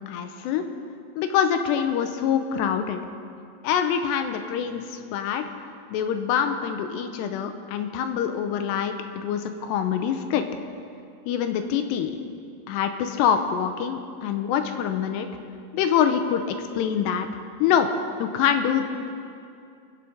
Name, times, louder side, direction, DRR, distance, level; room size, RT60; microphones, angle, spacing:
voice 1, 0.1-0.7 1.2-3.0 3.6-5.5 5.9-10.4 11.3-12.2 12.7-15.3 15.7-17.3 17.6-17.9 18.2-18.8, left 8 dB, 85° left, 7 dB, 2.8 m, -25 dB
26.5 x 10.5 x 3.3 m, 2.5 s
omnidirectional pair, 5.0 m